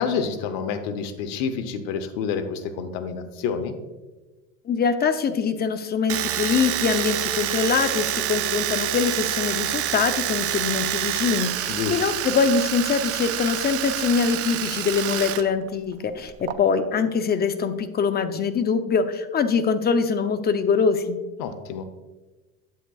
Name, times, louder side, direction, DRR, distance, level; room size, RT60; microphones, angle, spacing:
voice 1, 0.0-3.7 11.7-12.0 21.4-21.8, left 6 dB, 75° left, 9 dB, 0.8 m, -28 dB
voice 2, 4.7-21.2, left 5 dB, 30° left, 10 dB, 0.6 m, -23 dB
Domestic sounds home sounds, 6.1-15.4 15.7-16.5, right 13 dB, 45° right, 0.5 m, -27 dB
9.1 x 7.9 x 2.3 m, 1.2 s
supercardioid pair, 100°, 32 cm